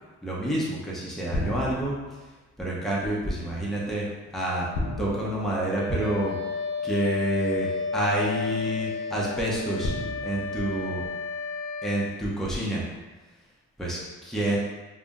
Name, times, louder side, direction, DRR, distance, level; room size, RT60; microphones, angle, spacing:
voice 1, 0.2-2.0 2.6-4.1 4.3-4.7 5.0-6.4 6.8-7.7 7.9-9.9 10.2-11.0 11.8-12.8 13.8-14.6, right 1 dB, ahead, -6 dB, 0.8 m, -28 dB
sound 1, 1.3-2.3 4.7-6.4 7.6-7.7 9.8-11.5, left 1 dB, 85° left, 0.6 m, -35 dB
Wind instrument woodwind instrument, 5.6-12.1, left 4 dB, 20° left, 1.1 m, -32 dB
2.5 x 2.1 x 3.5 m, 1.2 s
cardioid pair, 90°, 30 cm